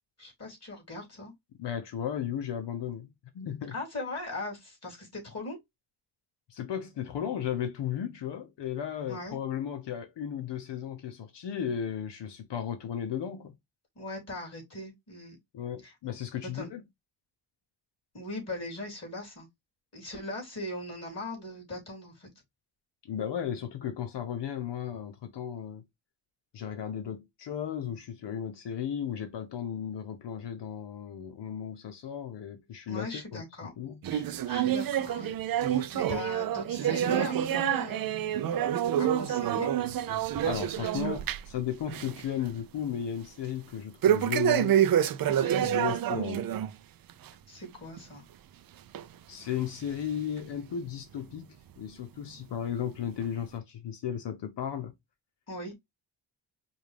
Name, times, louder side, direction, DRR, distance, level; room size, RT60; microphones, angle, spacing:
voice 1, 0.2-1.3 3.7-5.6 9.1-9.4 14.0-15.4 15.8-15.9 16.4-16.7 18.1-19.5 19.9-22.3 32.9-33.7 34.1-35.3 35.7-38.3 39.0-39.8 41.0-41.1 45.3-45.6 47.5-48.2 55.5-55.7, left 2 dB, 35° left, 2.9 m, -39 dB
voice 2, 1.6-3.1 3.3-3.7 6.5-13.5 15.5-16.8 23.0-25.8 26.5-34.0 40.4-44.8 45.6-46.5 49.3-54.9, left 9 dB, 65° left, 0.9 m, -35 dB
sound 1, 34.0-41.6 41.9-42.2 42.6-42.7 44.0-46.7 47.1-47.3 48.0-48.1 48.9-49.0 49.8-49.9, right 10 dB, 50° right, 0.5 m, -27 dB
5.2 x 2.6 x 3.3 m
cardioid pair, 115°, 46 cm